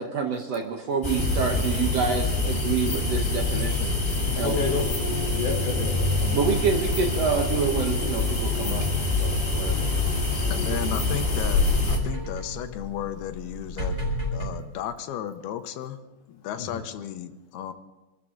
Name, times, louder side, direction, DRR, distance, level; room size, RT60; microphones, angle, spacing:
voice 1, 0.0-3.9 4.4-4.6 6.3-8.8 9.2-9.9, right 5 dB, 75° right, 3 dB, 1.5 m, -27 dB
sound 1, 1.0-12.0, left 3 dB, 15° left, 3.0 m, -25 dB
voice 2, 4.4-4.9 5.3-6.4 10.9-11.1 16.6-16.8, left 4 dB, 60° left, -3 dB, 3.0 m, -30 dB
sound 2, 9.7-14.4, left 1 dB, 15° right, 4.4 m, -36 dB
voice 3, 10.5-16.0 16.3-17.7, left 10 dB, 85° left, 8 dB, 2.8 m, -34 dB
25.0 x 13.0 x 3.8 m, 1.1 s
omnidirectional pair, 4.5 m